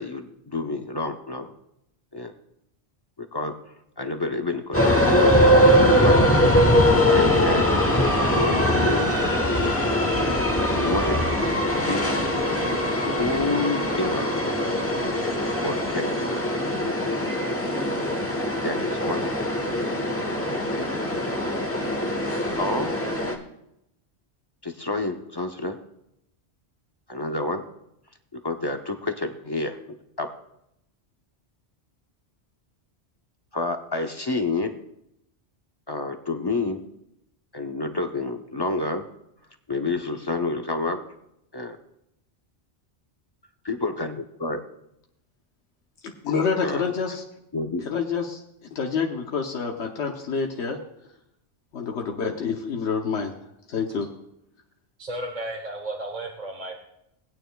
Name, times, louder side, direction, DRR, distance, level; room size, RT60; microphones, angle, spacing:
voice 1, 0.0-1.5 2.1-2.3 3.2-3.5 4.0-5.4 6.0-6.6 6.9-7.9 8.2-9.2 10.7-11.2 11.7-12.1 13.2-14.3 15.6-16.2 18.6-19.2 20.7-20.9 22.6-22.9 24.6-25.8 27.1-27.6 28.3-30.3 33.5-34.7 35.9-36.8 37.5-39.0 39.7-41.0 41.5-41.8 43.6-44.6 46.6-46.9 47.5-47.8, left 3 dB, 30° left, 5 dB, 0.5 m, -29 dB
sound 1, 4.7-23.4, equal, 15° left, 1.0 m, -22 dB
voice 2, 46.2-47.2 47.8-50.8 51.7-53.3 53.7-54.1, left 5 dB, 90° left, 2 dB, 1.2 m, -27 dB
voice 3, 55.0-56.8, right 1 dB, 40° right, 1 dB, 1.1 m, -33 dB
19.0 x 9.1 x 2.2 m, 0.81 s
omnidirectional pair, 1.1 m